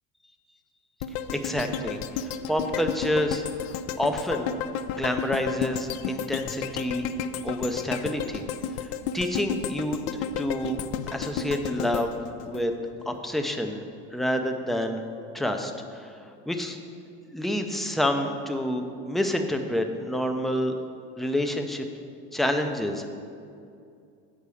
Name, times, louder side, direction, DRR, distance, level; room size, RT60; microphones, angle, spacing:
sound 1, 1.0-13.2 13.6-13.7, left 7 dB, 60° left, 0.5 m, -32 dB
voice 1, 1.3-4.5 4.9-7.1 7.4-8.4 8.8-10.8 11.1-12.2 12.4-12.7 13.1-13.8 14.1-15.0 15.3-16.8 17.3-20.7 21.2-21.9 22.3-23.1, left 1 dB, ahead, 4 dB, 0.4 m, -28 dB
7.9 x 4.9 x 6.9 m, 2.4 s
supercardioid pair, 135°, 29 cm